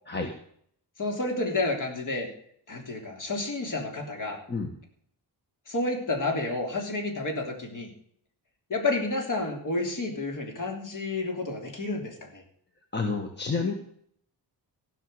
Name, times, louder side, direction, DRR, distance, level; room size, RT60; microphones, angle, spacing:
voice 1, 1.0-2.3 2.7-4.4 5.7-7.9 8.7-12.4, left 2 dB, 45° left, 2 dB, 3.5 m, -30 dB
voice 2, 12.9-13.7, left 4 dB, 25° left, 4 dB, 1.5 m, -29 dB
15.5 x 6.3 x 7.9 m, 0.64 s
cardioid pair, 120°, 42 cm